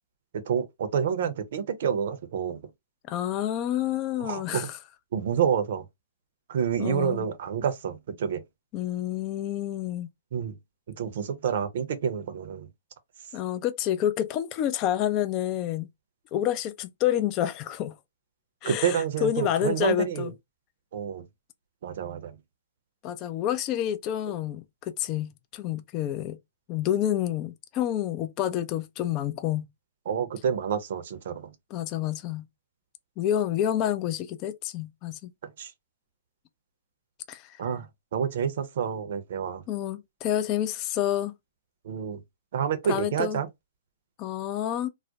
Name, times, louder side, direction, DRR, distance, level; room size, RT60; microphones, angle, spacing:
voice 1, 0.5-2.6 4.2-4.7 5.1-5.8 6.5-8.4 10.3-10.6 10.9-12.7 18.7-20.3 20.9-21.3 21.8-22.4 24.3-24.4 30.1-31.5 35.6-35.7 37.6-39.6 41.8-42.2 42.5-43.5, right 7 dB, 60° right, 0.6 m, -28 dB
voice 2, 3.1-4.8 6.8-7.3 8.7-10.1 13.3-15.9 16.3-17.9 18.6-20.3 23.0-26.4 26.7-29.7 31.7-32.5 33.2-35.3 37.3-37.6 39.7-41.3 42.9-43.4 44.2-44.9, left 11 dB, 35° left, 0.3 m, -28 dB
2.3 x 2.1 x 2.7 m
hypercardioid pair, 130°, 0 cm